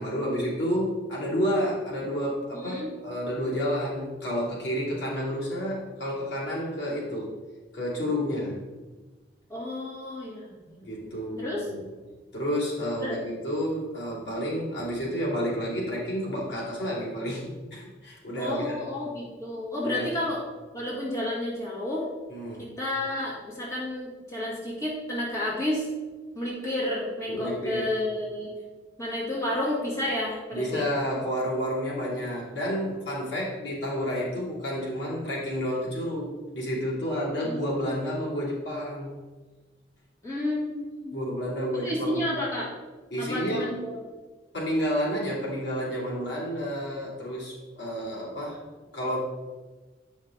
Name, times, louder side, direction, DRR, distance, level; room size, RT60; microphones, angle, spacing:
voice 1, 0.0-7.4 7.7-8.6 10.8-11.9 12.3-18.8 19.8-20.2 22.3-22.7 27.3-27.9 30.5-39.1 41.1-42.3 43.1-43.7 44.5-48.6 48.9-49.2, equal, 80° left, -5 dB, 2.6 m, -30 dB
voice 2, 2.5-2.9 9.5-10.5 11.4-11.7 13.0-13.2 18.4-20.4 20.7-22.1 22.6-25.9 26.4-28.5 29.0-30.9 37.4-37.7 40.2-41.1 41.8-42.7 43.2-44.0, left 1 dB, 15° left, -6 dB, 1.8 m, -31 dB
8.7 x 5.3 x 3.7 m, 1.3 s
head